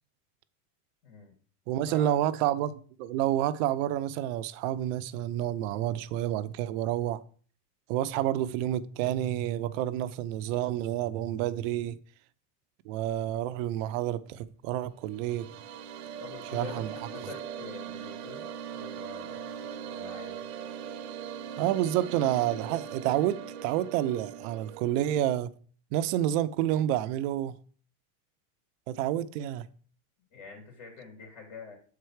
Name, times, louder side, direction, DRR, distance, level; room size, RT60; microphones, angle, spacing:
voice 1, 1.0-1.3 1.8-2.4 8.2-8.3 16.2-18.5 18.7-20.4 30.3-31.7, left 4 dB, 50° left, 3.0 m, -46 dB
voice 2, 1.7-7.2 7.9-12.0 12.9-15.5 16.5-16.9 21.6-25.5 25.9-27.6 28.9-29.7, right 12 dB, 55° right, 0.7 m, -29 dB
sound 1, 14.9-25.2, right 8 dB, 85° right, 1.0 m, -40 dB
7.4 x 4.6 x 4.8 m
supercardioid pair, 125°, 45 cm